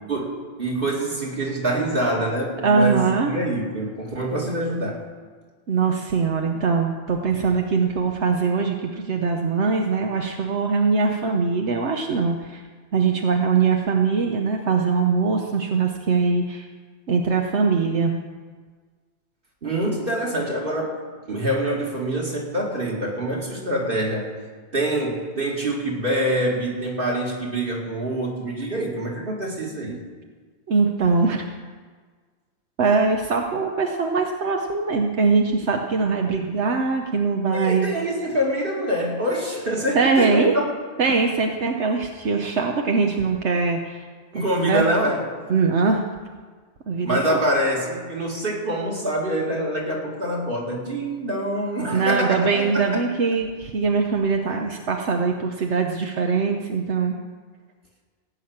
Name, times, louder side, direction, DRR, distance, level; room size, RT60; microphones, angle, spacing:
voice 1, 0.1-5.0 19.6-24.3 24.7-30.0 37.5-40.7 44.3-45.2 47.0-53.0, right 1 dB, 50° right, -2 dB, 2.5 m, -25 dB
voice 2, 2.6-3.3 5.7-12.6 12.9-16.7 17.1-18.2 30.7-31.4 32.8-37.9 39.9-40.5 41.0-44.1 44.3-44.4 44.7-44.8 45.5-46.0 46.9-47.4 51.9-57.1, right 4 dB, 75° right, 2 dB, 1.2 m, -22 dB
16.5 x 5.9 x 8.7 m, 1.5 s
omnidirectional pair, 1.2 m